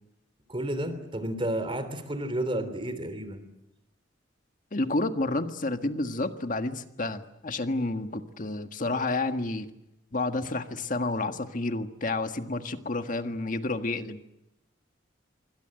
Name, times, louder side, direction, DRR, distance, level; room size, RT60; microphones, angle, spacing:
voice 1, 0.5-3.4, right 1 dB, 30° right, 11 dB, 3.3 m, -31 dB
voice 2, 4.7-9.7 10.1-14.2, left 2 dB, 45° left, 7 dB, 1.7 m, -30 dB
26.5 x 24.0 x 8.0 m, 0.88 s
head